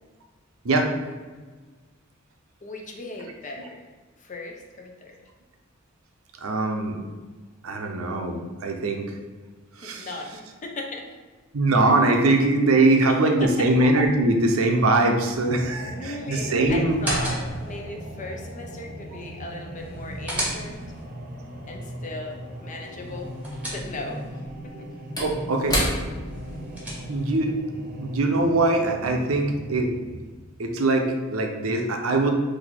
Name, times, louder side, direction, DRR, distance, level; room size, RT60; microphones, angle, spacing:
voice 1, 2.6-3.8 4.2-5.2 9.8-11.1 13.1-13.7 15.9-20.8 21.6-23.3 23.7-24.2 24.6-24.9, left 2 dB, 40° left, 2 dB, 0.6 m, -37 dB
voice 2, 6.4-7.0 7.6-9.2 9.8-10.1 11.5-17.0 25.2-25.8 27.1-27.6 28.0-29.9 30.6-32.3, right 2 dB, 90° right, 3 dB, 0.6 m, -22 dB
sound 1, 15.3-30.3, equal, 40° right, 0.5 m, -39 dB
sound 2, 16.9-17.8 19.8-21.0 23.0-24.3 26.3-27.4, right 1 dB, 5° right, 1.1 m, -33 dB
Slam / Wood, 24.2-28.9 29.3-29.4, equal, 20° left, 1.0 m, -32 dB
4.1 x 2.7 x 4.2 m, 1.4 s
head